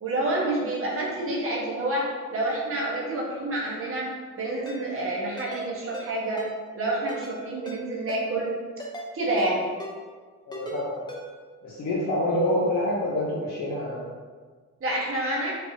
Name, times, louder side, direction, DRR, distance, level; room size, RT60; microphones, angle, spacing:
voice 1, 0.0-4.1 4.4-6.4 6.7-8.5 9.1-9.7 14.8-15.5, right 1 dB, 45° right, -4 dB, 1.3 m, -28 dB
Ringtone, 4.7-4.8 5.4-5.6 5.9-6.1 6.4-6.5 7.1-7.4 7.7-7.8 8.1-8.2 8.8-9.1 9.4-9.5 9.8-9.9 10.5-10.8 11.1-11.2, equal, 15° left, 0.9 m, -37 dB
voice 2, 10.5-11.0 11.6-14.1, left 1 dB, 65° left, -6 dB, 0.8 m, -27 dB
4.6 x 3.0 x 2.8 m, 1.5 s
cardioid pair, 90°, 30 cm